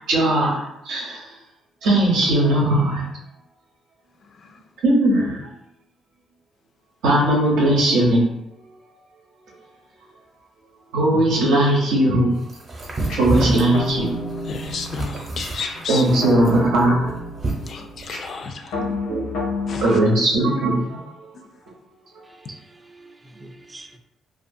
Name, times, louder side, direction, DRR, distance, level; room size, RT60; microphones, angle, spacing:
voice 1, 0.1-1.3 1.8-3.1 4.8-5.4 7.0-8.3 10.9-12.3 13.2-14.1 15.9-17.2 18.8-19.4 19.8-21.0, right 1 dB, 90° right, -3 dB, 0.7 m, -19 dB
sound 1, 12.5-18.3, right 2 dB, 45° right, 0.7 m, -29 dB
sound 2, 13.1-19.8, left 2 dB, 90° left, 0.7 m, -31 dB
voice 2, 14.4-16.1 17.7-18.8 19.7-20.0, left 4 dB, 55° left, 6 dB, 0.3 m, -32 dB
voice 3, 22.4-24.0, right 2 dB, 20° right, 4 dB, 0.3 m, -45 dB
2.4 x 2.4 x 2.6 m, 0.82 s
cardioid pair, 90°, 0 cm